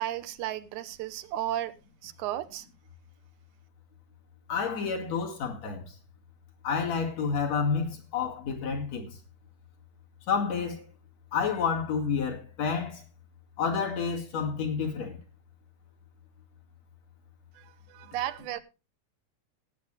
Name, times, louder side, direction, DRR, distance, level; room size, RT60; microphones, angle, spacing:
voice 1, 0.0-1.7 2.0-2.7 17.6-18.6, right 13 dB, 85° right, 2.2 m, -34 dB
voice 2, 4.5-5.9 6.6-9.2 10.3-10.8 11.3-13.0 13.6-15.2, left 6 dB, 60° left, 3.3 m, -29 dB
18.0 x 8.4 x 3.2 m
omnidirectional pair, 3.5 m